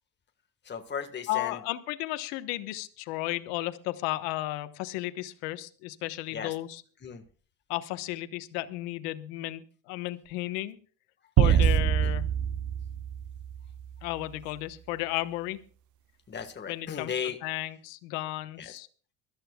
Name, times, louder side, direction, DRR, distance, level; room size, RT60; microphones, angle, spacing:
voice 1, 0.6-1.6 6.3-6.5 7.0-7.2 11.4-11.6 12.0-12.1 16.3-17.4 18.6-18.8, left 7 dB, 25° left, 5 dB, 1.5 m, -36 dB
voice 2, 1.3-6.8 7.7-10.8 11.4-12.3 14.0-15.6 16.7-17.1 17.4-18.9, left 17 dB, 90° left, 12 dB, 1.1 m, -34 dB
sound 1, 11.4-13.9, right 10 dB, 50° right, 0.7 m, -25 dB
23.5 x 13.5 x 2.3 m, 0.41 s
cardioid pair, 105°, 39 cm